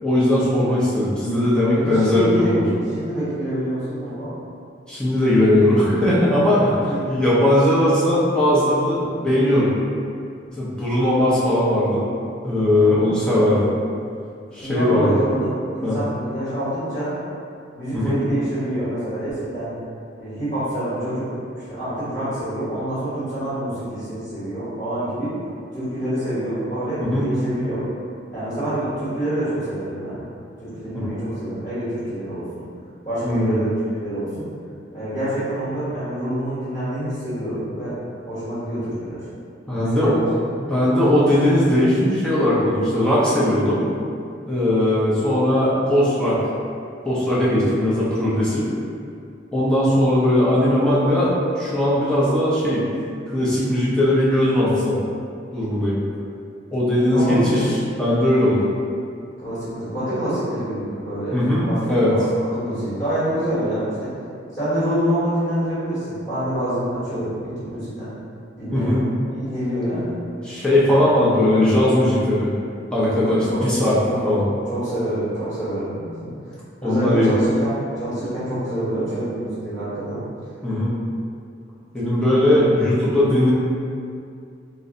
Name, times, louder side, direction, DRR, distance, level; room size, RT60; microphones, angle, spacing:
voice 1, 0.0-2.6 4.9-9.7 10.6-12.1 12.4-13.8 14.5-15.1 15.8-16.0 17.9-18.2 27.0-27.3 30.9-31.2 33.2-33.5 39.7-40.1 40.6-43.8 44.4-46.4 47.0-48.7 49.5-52.8 53.3-55.0 55.5-55.9 56.7-57.7 58.0-58.7 61.3-62.1 68.7-69.0 70.4-72.5 72.9-74.0 74.2-74.4 76.8-77.3 80.6-80.9 81.9-83.5, left 1 dB, 5° left, -9 dB, 0.6 m, -19 dB
voice 2, 1.7-4.3 6.7-7.2 12.8-13.1 14.6-17.1 17.7-19.7 20.2-21.3 21.7-25.3 25.7-27.8 28.3-30.3 30.6-32.4 33.0-34.4 34.9-37.9 38.3-39.2 39.7-40.3 57.1-57.7 59.4-61.4 61.7-61.8 62.1-62.2 62.5-64.1 64.5-68.1 68.6-69.0 69.3-70.1 70.9-71.1 73.5-73.6 74.0-74.2 74.7-76.3 76.8-80.2, right 1 dB, 20° left, -14 dB, 1.1 m, -26 dB
2.6 x 2.1 x 3.7 m, 2.4 s
head